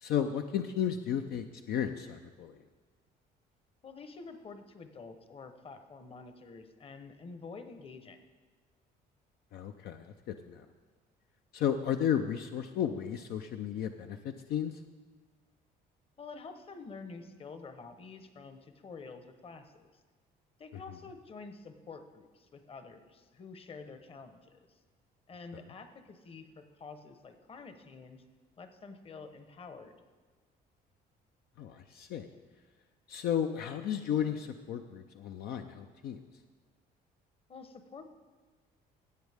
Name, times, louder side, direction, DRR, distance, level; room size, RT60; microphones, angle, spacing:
voice 1, 0.0-2.5 9.5-10.1 10.5-10.6 11.5-14.7 31.6-32.3 33.1-36.2, left 9 dB, 70° left, 6 dB, 0.5 m, -33 dB
voice 2, 3.8-8.2 16.2-19.9 20.6-24.8 25.3-28.2 28.6-29.9 37.5-38.1, left 4 dB, 35° left, 8 dB, 0.9 m, -48 dB
16.0 x 8.0 x 3.5 m, 1.3 s
cardioid pair, 110°, 17 cm